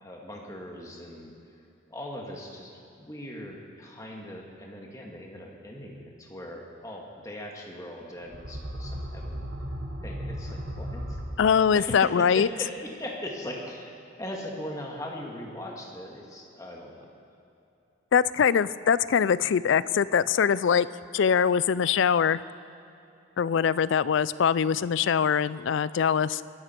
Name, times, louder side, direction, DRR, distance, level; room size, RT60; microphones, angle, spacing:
voice 1, 0.0-1.3 1.9-2.7 3.0-9.5 10.0-11.2 11.8-17.1, left 1 dB, 15° left, -1 dB, 1.8 m, -39 dB
sound 1, 8.2-12.0, equal, 60° right, 1.5 m, -36 dB
voice 2, 11.4-12.5 18.1-20.9 21.1-22.4 23.4-26.4, left 7 dB, 65° left, 18 dB, 0.4 m, -23 dB
22.0 x 12.0 x 4.5 m, 2.7 s
head